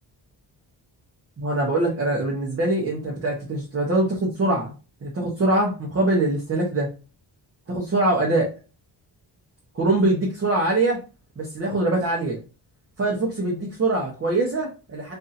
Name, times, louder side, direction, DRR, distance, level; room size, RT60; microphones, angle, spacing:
voice 1, 1.4-4.7 5.0-6.9 7.7-8.5 9.7-11.0 11.4-12.4 13.0-15.1, right 2 dB, 30° right, -2 dB, 0.9 m, -23 dB
4.2 x 2.6 x 2.5 m, 0.32 s
wide cardioid pair, 180°, 43 cm